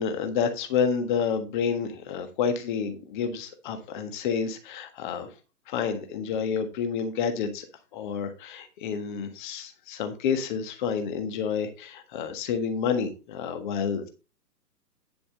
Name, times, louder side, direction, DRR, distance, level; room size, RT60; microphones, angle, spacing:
voice 1, 0.0-5.3 5.7-7.6 7.9-14.1, left 6 dB, 30° left, 8 dB, 1.5 m, -29 dB
9.7 x 6.9 x 3.9 m, 0.32 s
figure-of-eight pair, 125°, 48 cm